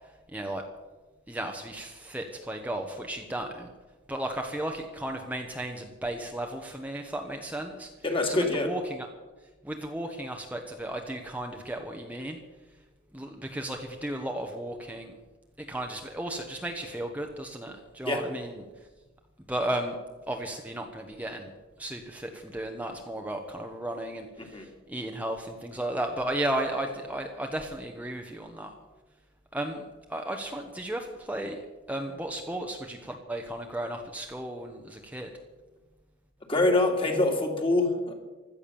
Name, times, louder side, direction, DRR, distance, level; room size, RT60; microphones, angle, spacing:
voice 1, 0.3-0.6 1.3-3.7 4.1-7.9 8.3-9.1 9.6-12.4 13.1-15.1 15.6-18.5 19.5-20.0 20.3-21.5 21.8-28.7 29.5-29.8 30.1-31.6 31.9-35.3, right 1 dB, 10° right, 3 dB, 1.1 m, -34 dB
voice 2, 8.0-8.7 18.0-18.2 24.4-24.7 36.5-38.1, left 2 dB, 25° left, 3 dB, 2.8 m, -25 dB
16.5 x 12.5 x 7.0 m, 1.2 s
head